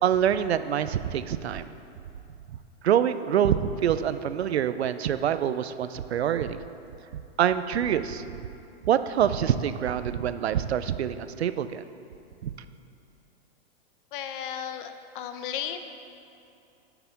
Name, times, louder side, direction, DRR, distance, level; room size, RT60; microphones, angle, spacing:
voice 1, 0.0-1.7 2.8-6.6 7.4-8.2 8.8-11.8 12.4-12.5, right 9 dB, 90° right, 12 dB, 0.5 m, -25 dB
voice 2, 14.1-15.9, left 9 dB, 55° left, 8 dB, 0.8 m, -34 dB
8.1 x 5.9 x 6.9 m, 2.7 s
hypercardioid pair, 120°, 31 cm